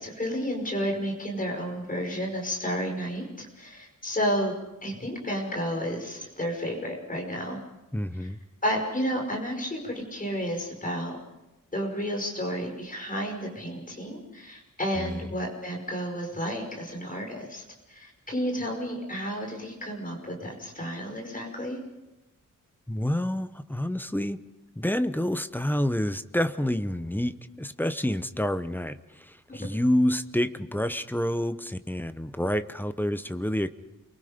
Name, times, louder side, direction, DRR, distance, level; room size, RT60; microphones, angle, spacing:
voice 1, 0.0-4.5 4.8-7.6 8.2-8.3 8.6-11.2 11.7-17.6 17.9-21.8 29.5-29.6, equal, 25° left, 2 dB, 5.4 m, -31 dB
voice 2, 7.9-8.4 15.0-15.3 22.9-24.4 24.7-33.7, left 1 dB, 5° left, 11 dB, 0.8 m, -28 dB
29.5 x 23.5 x 5.2 m, 1.0 s
wide cardioid pair, 170°, 33 cm